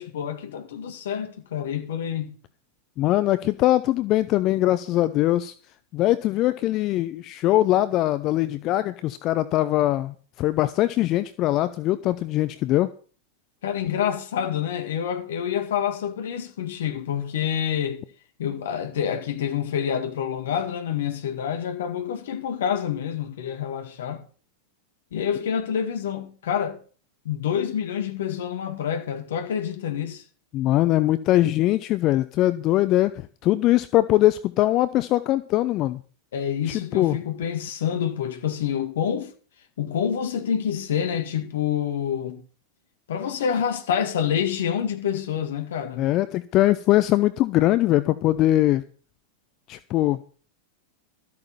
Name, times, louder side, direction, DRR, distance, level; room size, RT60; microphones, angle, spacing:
voice 1, 0.0-2.4 13.6-18.0 18.4-24.2 25.1-26.8 27.2-30.2 36.3-39.3 39.8-42.4 43.1-46.1, left 8 dB, 60° left, 2.0 m, -27 dB
voice 2, 3.0-5.5 5.9-12.9 30.5-36.0 36.9-37.2 46.0-48.8 49.7-50.2, left 15 dB, 35° left, 0.6 m, -21 dB
13.0 x 8.5 x 5.5 m
figure-of-eight pair, 90°, 0 cm